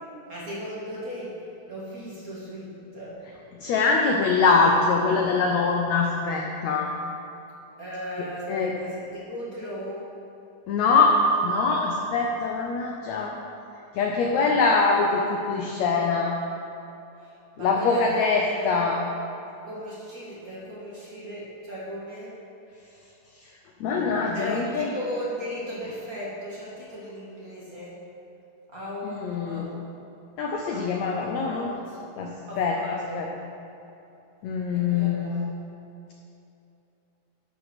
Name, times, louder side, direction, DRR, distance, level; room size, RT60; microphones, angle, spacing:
voice 1, 0.3-3.2 7.8-10.1 17.2-18.9 19.7-22.4 24.3-28.1 28.7-29.9 30.6-32.0 32.5-33.2 34.7-35.4, equal, 40° right, -7 dB, 1.3 m, -37 dB
voice 2, 3.5-6.9 8.5-8.7 10.7-13.4 13.9-16.4 17.6-19.0 23.8-24.9 29.0-29.7 30.4-31.7 32.2-33.3 34.4-35.3, left 4 dB, 80° left, 1 dB, 1.6 m, -23 dB
11.5 x 5.3 x 6.1 m, 2.8 s
omnidirectional pair, 3.9 m